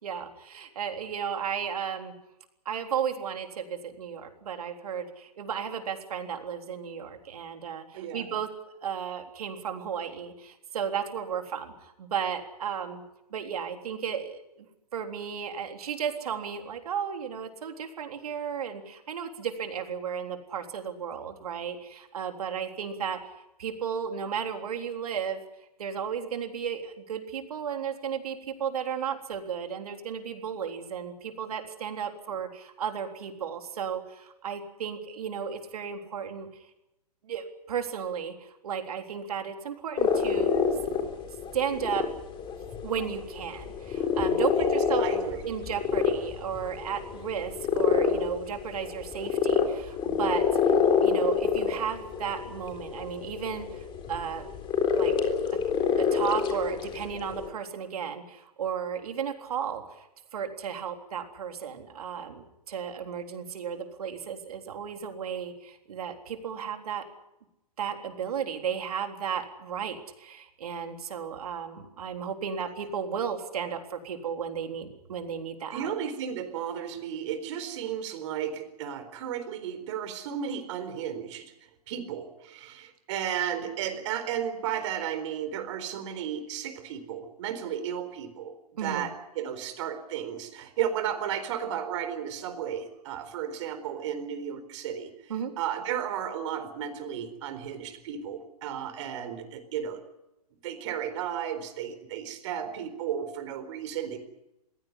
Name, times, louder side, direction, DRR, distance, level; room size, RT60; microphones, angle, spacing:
voice 1, 0.0-2.1 2.7-8.5 8.8-13.0 13.3-14.7 14.9-23.2 23.6-25.4 25.8-36.5 37.2-40.5 41.5-42.0 42.8-45.0 45.4-50.4 51.0-54.5 55.0-55.1 55.5-55.6 56.0-60.1 60.3-67.0 67.8-75.9 88.8-89.1 95.3-95.5, right 7 dB, 65° right, 5 dB, 3.7 m, -34 dB
voice 2, 7.9-8.3 44.6-45.4 75.7-81.5 81.9-88.5 88.8-95.1 95.6-100.0 100.6-104.2, right 9 dB, 50° right, 9 dB, 4.2 m, -34 dB
sound 1, 40.0-57.5, left 6 dB, 25° left, 3.7 m, -27 dB
22.0 x 16.5 x 9.9 m, 0.90 s
hypercardioid pair, 125°, 20 cm